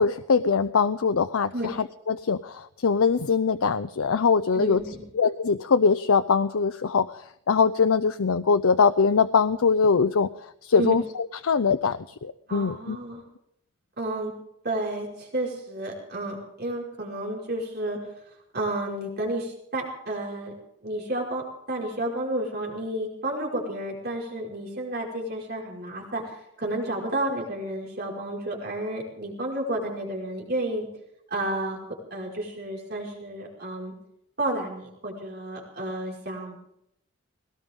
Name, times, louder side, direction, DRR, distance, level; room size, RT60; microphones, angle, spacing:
voice 1, 0.0-4.8 5.1-13.0, left 5 dB, 90° left, 11 dB, 0.6 m, -22 dB
voice 2, 4.5-5.0 10.8-11.0 12.5-13.2 14.0-14.3 14.6-18.0 18.5-20.5 20.8-30.9 31.3-31.8 32.1-33.9 34.4-36.7, right 1 dB, 50° right, -1 dB, 5.2 m, -31 dB
20.5 x 18.5 x 3.7 m, 0.77 s
head